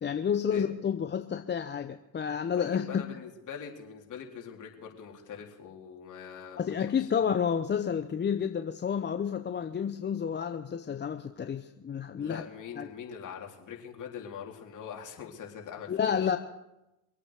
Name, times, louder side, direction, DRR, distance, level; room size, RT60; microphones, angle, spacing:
voice 1, 0.0-3.0 6.6-12.4 12.8-12.9 15.9-16.4, left 7 dB, 20° left, 7 dB, 0.8 m, -30 dB
voice 2, 2.5-7.1 12.2-16.2, left 7 dB, 40° left, 0 dB, 4.0 m, -43 dB
24.0 x 8.7 x 6.6 m, 0.95 s
hypercardioid pair, 80°, 48 cm